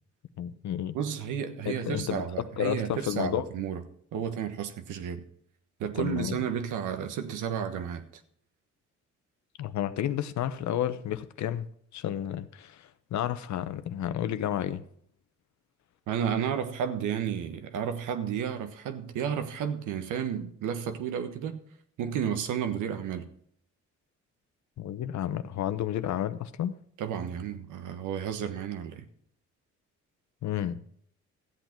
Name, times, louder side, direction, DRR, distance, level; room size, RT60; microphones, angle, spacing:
voice 1, 0.4-1.0 1.7-2.2 2.6-3.4 6.0-6.4 9.6-11.7 11.9-14.8 24.8-26.7 30.4-30.8, left 10 dB, 70° left, 0.9 m, -31 dB
voice 2, 0.9-3.8 4.1-5.2 5.8-8.1 16.1-21.6 22.0-23.3 27.0-29.0, right 8 dB, 85° right, 1.3 m, -32 dB
14.0 x 8.2 x 4.5 m
cardioid pair, 90°, 30 cm